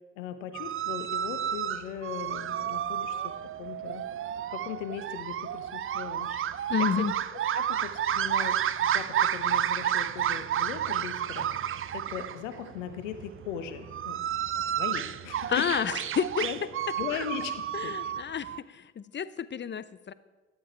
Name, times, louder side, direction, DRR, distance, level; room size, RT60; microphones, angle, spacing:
voice 1, 0.2-4.0 4.5-7.2 7.5-11.5 11.9-14.2 14.5-15.7 16.4-16.6 17.0-17.5 17.8-18.1, left 9 dB, 80° left, 10 dB, 1.0 m, -39 dB
sound 1, 0.5-18.6, right 10 dB, 35° right, 0.6 m, -31 dB
voice 2, 6.7-7.1 15.5-16.5 17.7-20.1, left 7 dB, 30° left, 17 dB, 0.7 m, -30 dB
13.5 x 11.5 x 4.5 m, 1.2 s
hypercardioid pair, 45°, 37 cm